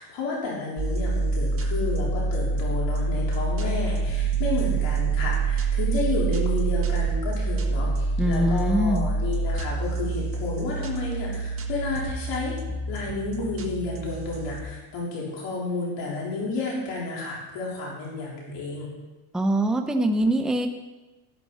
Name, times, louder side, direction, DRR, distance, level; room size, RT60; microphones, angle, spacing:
voice 1, 0.0-12.6 12.9-18.9, left 3 dB, 65° left, -4 dB, 4.2 m, -31 dB
sound 1, 0.8-14.6, right 4 dB, 30° right, 1.4 m, -26 dB
voice 2, 8.2-9.1 19.3-20.7, right 1 dB, ahead, 5 dB, 0.7 m, -23 dB
12.5 x 12.5 x 4.2 m, 1.1 s
cardioid pair, 130°, 47 cm